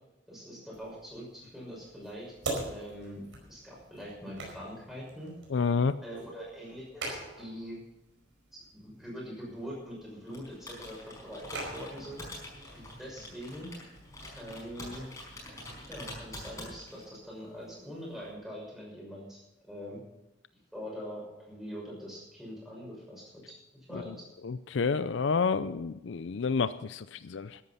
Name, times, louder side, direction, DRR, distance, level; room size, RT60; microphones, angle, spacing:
voice 1, 0.3-3.2 3.5-5.3 6.0-7.8 8.5-12.2 12.7-13.7 14.3-15.1 15.9-19.4 19.7-20.0 20.7-23.6 23.9-24.2, equal, ahead, -4 dB, 6.1 m, -43 dB
sound 1, 0.7-18.3, right 2 dB, 75° right, 4.8 m, -46 dB
voice 2, 5.5-6.0 23.9-24.0 24.4-27.6, left 5 dB, 70° left, 14 dB, 0.5 m, -29 dB
Computer keyboard, 10.3-17.1, left 1 dB, 15° left, 5.0 m, -46 dB
13.5 x 11.0 x 5.7 m, 0.93 s
head